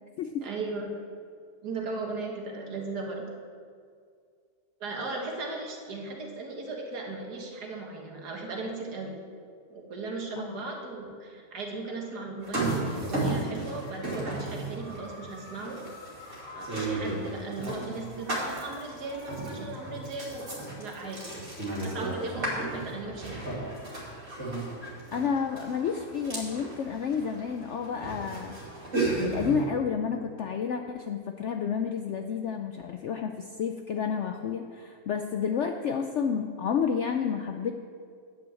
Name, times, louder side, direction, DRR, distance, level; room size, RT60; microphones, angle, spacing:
voice 1, 0.4-0.9 1.6-3.2 4.8-9.1 9.7-15.8 16.5-20.5 20.8-21.5 21.8-23.4, right 3 dB, 75° right, 1 dB, 1.9 m, -37 dB
sound 1, 12.4-29.7, right 2 dB, 50° right, 2.8 m, -34 dB
voice 2, 25.1-28.6 29.2-37.8, left 6 dB, 70° left, 5 dB, 0.6 m, -30 dB
10.0 x 5.9 x 7.6 m, 2.2 s
omnidirectional pair, 1.7 m